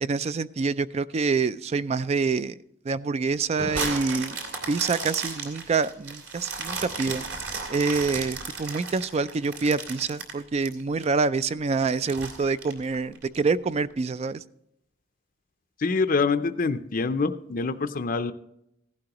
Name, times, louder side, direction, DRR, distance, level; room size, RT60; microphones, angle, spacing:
voice 1, 0.0-2.6 2.9-4.4 4.7-7.2 7.7-14.4, right 4 dB, 30° right, 15 dB, 0.3 m, -26 dB
sound 1, 3.6-6.8, left 1 dB, 80° right, 4.7 m, -44 dB
sound 2, 3.7-11.0 11.5-11.6 12.1-13.4 13.9-14.0, right 4 dB, 60° right, 2.5 m, -34 dB
voice 2, 15.8-18.3, left 4 dB, 45° left, 10 dB, 0.5 m, -25 dB
15.5 x 11.5 x 2.9 m, 0.78 s
head